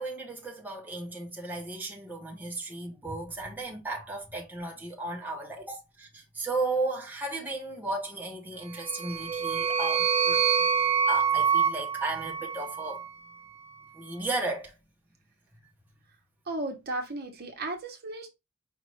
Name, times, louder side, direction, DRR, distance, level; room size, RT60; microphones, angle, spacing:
voice 1, 0.0-10.4 11.1-13.0 14.0-14.7, right 2 dB, 10° right, 0.9 m, -35 dB
sound 1, 8.7-13.1, right 6 dB, 30° right, 0.4 m, -26 dB
voice 2, 16.5-18.3, right 2 dB, 50° right, 0.9 m, -35 dB
5.1 x 2.5 x 3.1 m
head